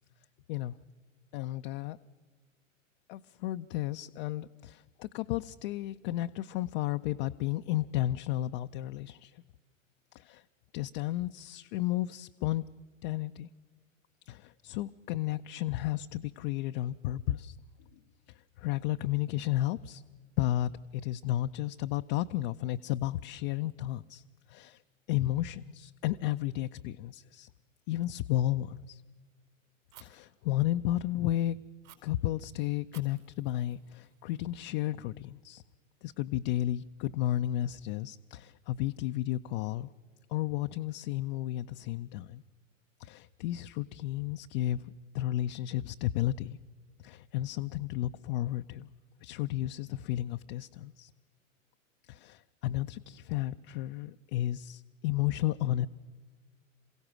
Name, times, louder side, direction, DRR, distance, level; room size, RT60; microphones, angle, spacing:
voice 1, 1.3-2.0 3.1-9.4 10.1-10.4 10.7-12.6 13.0-13.5 14.3-17.6 18.3-20.0 20.4-24.2 24.5-24.8 25.1-27.5 27.9-29.0 30.0-31.6 32.0-35.6 36.0-39.9 40.3-42.4 43.0-46.6 47.0-48.9 49.2-51.1 52.1-55.9, left 14 dB, 45° left, 8 dB, 0.5 m, -33 dB
Fire, 29.9-30.0 31.8-32.0 32.9-34.9, right 12 dB, 75° right, 4.8 m, -57 dB
27.5 x 16.0 x 6.1 m, 1.5 s
hypercardioid pair, 100°, 40 cm